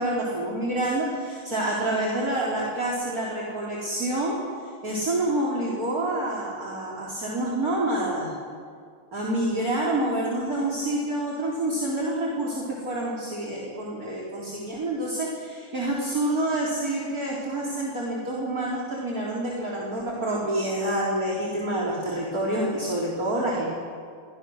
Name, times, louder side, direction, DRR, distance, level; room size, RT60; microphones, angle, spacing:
voice 1, 0.0-4.4 4.8-8.3 9.1-23.6, right 1 dB, 40° right, -4 dB, 4.3 m, -27 dB
29.5 x 25.0 x 6.5 m, 2.2 s
omnidirectional pair, 2.3 m